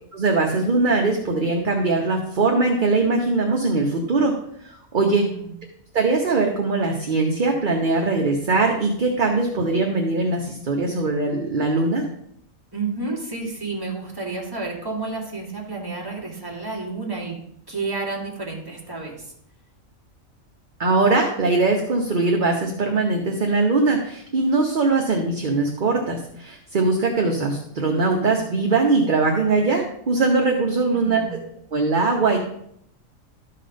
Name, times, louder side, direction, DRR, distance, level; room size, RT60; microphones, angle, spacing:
voice 1, 0.1-4.3 4.6-5.3 5.9-12.1 20.8-31.2 31.7-32.4, right 3 dB, 40° right, 1 dB, 1.0 m, -21 dB
voice 2, 5.0-5.6 12.7-17.4 17.7-19.3 30.9-31.4, right 3 dB, 15° right, -3 dB, 2.2 m, -31 dB
12.5 x 4.2 x 5.1 m, 0.72 s
omnidirectional pair, 1.4 m